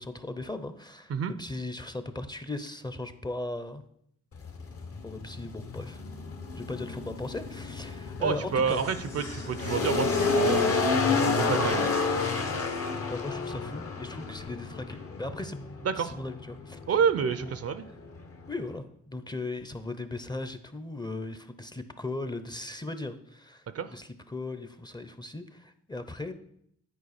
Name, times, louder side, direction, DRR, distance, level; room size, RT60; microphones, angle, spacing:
voice 1, 0.0-3.8 5.0-6.0 6.5-8.8 13.0-16.8 17.4-17.5 18.5-26.3, left 2 dB, 15° left, 10 dB, 0.6 m, -38 dB
sound 1, 4.3-18.8, left 4 dB, 50° left, 1.0 m, -30 dB
sound 2, 8.0-14.9, left 3 dB, 85° left, 1.8 m, -50 dB
voice 2, 8.2-10.9 11.4-11.9 15.8-16.1 16.9-17.8 23.7-24.0, right 6 dB, 50° right, 13 dB, 0.5 m, -28 dB
9.4 x 4.6 x 4.2 m, 0.71 s
cardioid pair, 60°, 30 cm